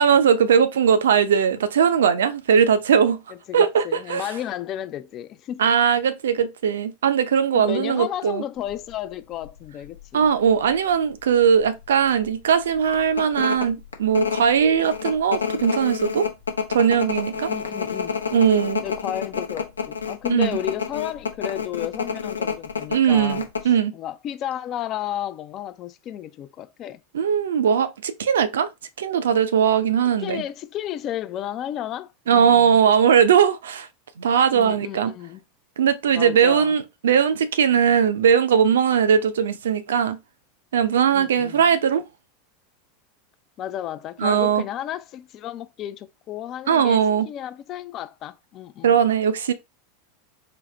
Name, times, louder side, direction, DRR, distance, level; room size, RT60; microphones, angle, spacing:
voice 1, 0.0-3.2 3.5-4.2 5.6-8.4 10.1-16.3 16.7-17.5 18.3-18.8 20.3-20.6 22.9-23.9 27.1-28.7 29.0-30.4 32.3-33.9 34.2-35.1 35.8-40.2 40.7-42.0 44.2-44.6 46.7-47.3 48.8-49.5, right 7 dB, 70° right, 0.5 m, -19 dB
voice 2, 3.3-5.6 7.5-10.2 17.4-18.2 18.8-27.0 30.2-32.8 34.5-35.4 36.1-36.7 41.1-41.6 43.6-49.0, left 11 dB, 40° left, 0.5 m, -33 dB
sound 1, 8.7-8.9 9.4-9.5 9.8-10.7 11.1-11.2 11.6-11.9 12.2-12.3 12.9-23.7, left 6 dB, 85° left, 0.8 m, -28 dB
4.0 x 2.8 x 3.2 m
figure-of-eight pair, 85°, 0 cm